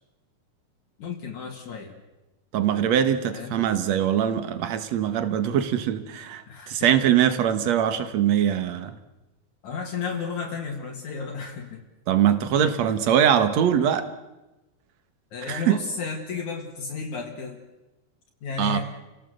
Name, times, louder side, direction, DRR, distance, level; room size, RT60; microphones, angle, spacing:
voice 1, 1.0-1.9 3.3-3.6 6.5-7.0 9.6-11.8 12.9-13.0 15.3-17.6 18.4-18.8, left 5 dB, 65° left, 1 dB, 3.4 m, -33 dB
voice 2, 2.5-9.0 12.1-14.1 15.5-15.8 18.6-18.8, right 9 dB, 60° right, 11 dB, 2.4 m, -22 dB
30.0 x 17.5 x 8.0 m, 1.1 s
omnidirectional pair, 3.8 m